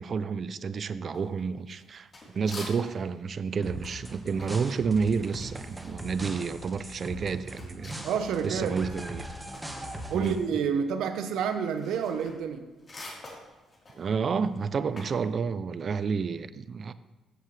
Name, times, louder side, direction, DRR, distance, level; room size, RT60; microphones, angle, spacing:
voice 1, 0.0-8.0 8.4-9.3 10.1-10.4 14.0-16.9, right 5 dB, 50° right, 0.5 m, -30 dB
sound 1, 1.1-3.1 3.4-8.7 9.0-15.2, left 2 dB, 35° left, 3.8 m, -48 dB
sound 2, 3.6-10.4, equal, 10° right, 1.5 m, -40 dB
voice 2, 8.0-8.8 10.1-12.6, right 7 dB, 80° right, 0.9 m, -29 dB
15.0 x 7.3 x 3.3 m
cardioid pair, 90°, 0 cm